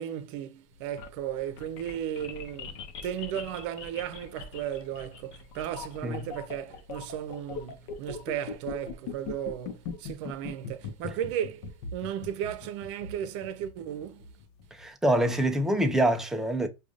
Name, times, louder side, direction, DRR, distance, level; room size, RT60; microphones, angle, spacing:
voice 1, 0.0-14.3, right 10 dB, 65° right, 0.7 m, -35 dB
sound 1, 0.7-14.8, left 5 dB, 60° left, 0.7 m, -41 dB
voice 2, 14.7-16.7, right 1 dB, 5° right, 0.4 m, -25 dB
4.9 x 2.4 x 2.5 m
supercardioid pair, 145°, 16 cm